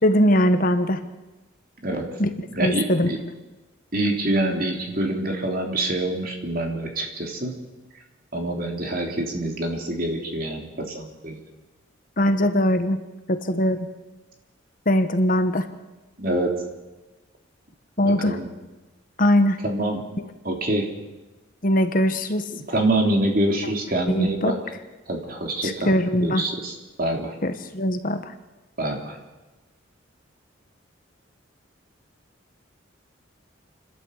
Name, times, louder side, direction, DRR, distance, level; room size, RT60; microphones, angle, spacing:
voice 1, 0.0-1.0 2.2-2.3 2.6-3.1 12.2-13.0 13.3-13.9 14.9-15.7 18.0-18.4 19.2-19.6 21.6-22.5 24.1-24.5 25.6-26.4 27.4-28.3, left 1 dB, 45° left, 8 dB, 1.3 m, -21 dB
voice 2, 1.8-2.2 2.5-3.2 3.9-7.5 8.3-11.4 16.2-16.5 18.0-18.5 19.6-20.0 20.4-20.9 22.5-24.6 25.1-25.9 26.2-27.4 28.8-29.2, right 1 dB, 45° right, 1 dB, 3.5 m, -26 dB
29.0 x 12.5 x 8.3 m, 1.1 s
head